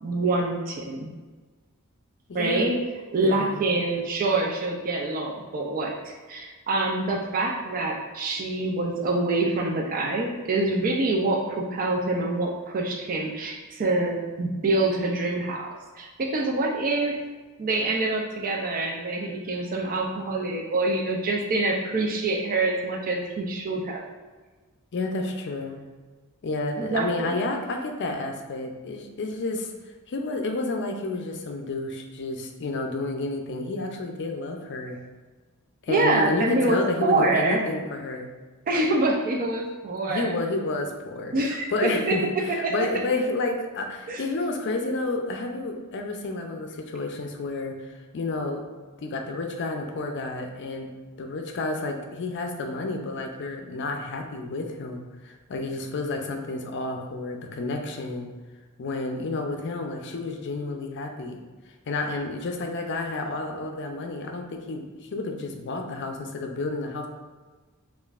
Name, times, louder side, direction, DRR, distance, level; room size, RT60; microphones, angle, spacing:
voice 1, 0.0-1.1 2.3-2.8 3.1-17.2 17.6-24.0 26.8-27.4 35.9-37.7 38.7-40.3 41.3-42.2 42.5-42.7 44.1-44.2, right 2 dB, 40° right, 0 dB, 0.4 m, -26 dB
voice 2, 2.3-2.7 3.2-3.6 24.9-25.8 26.4-29.7 30.1-35.0 35.8-38.3 40.1-48.6 49.0-50.9 51.2-58.3 58.8-61.4 61.9-67.1, left 2 dB, 55° left, 4 dB, 0.5 m, -30 dB
5.2 x 2.4 x 2.4 m, 1.3 s
head